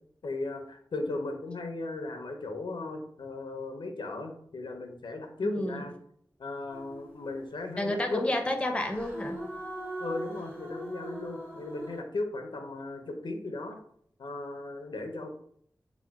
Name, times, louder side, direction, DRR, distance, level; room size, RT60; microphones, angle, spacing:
voice 1, 0.2-5.9 6.4-8.2 10.0-13.8 14.2-15.3, left 2 dB, 85° left, 4 dB, 0.5 m, -36 dB
voice 2, 5.4-5.9 7.8-9.4, left 1 dB, 15° left, 4 dB, 0.5 m, -30 dB
sound 1, 6.7-7.4 8.8-12.0, right 1 dB, 25° right, 0.7 m, -40 dB
2.9 x 2.0 x 3.4 m, 0.66 s
wide cardioid pair, 50°, 8 cm